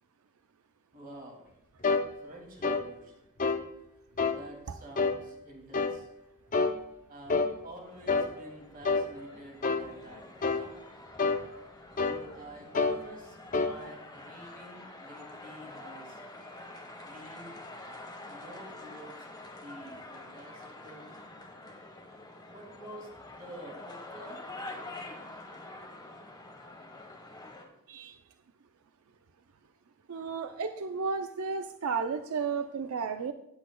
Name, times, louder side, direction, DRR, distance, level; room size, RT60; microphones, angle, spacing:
voice 1, 0.9-1.4 2.2-3.1 4.2-6.1 7.1-10.7 11.9-16.2 17.0-17.6 18.3-19.2 19.6-21.1 22.5-24.4, right 1 dB, 40° right, 0 dB, 2.4 m, -49 dB
sound 1, 1.8-2.1 2.6-2.9 3.4-3.6 4.2-4.4 5.0-5.2 5.7-6.0 6.5-6.8 7.3-7.5 8.1-8.3 8.8-9.1 9.6-9.9 10.4-10.7 11.2-11.4 12.0-12.2 12.7-13.0 13.5-13.7, left 4 dB, 35° left, 0.6 m, -27 dB
sound 2, 7.8-27.6, left 2 dB, 20° left, 1.3 m, -47 dB
voice 2, 30.1-33.3, right 5 dB, 80° right, 8 dB, 0.5 m, -33 dB
18.0 x 8.1 x 2.3 m, 0.82 s
head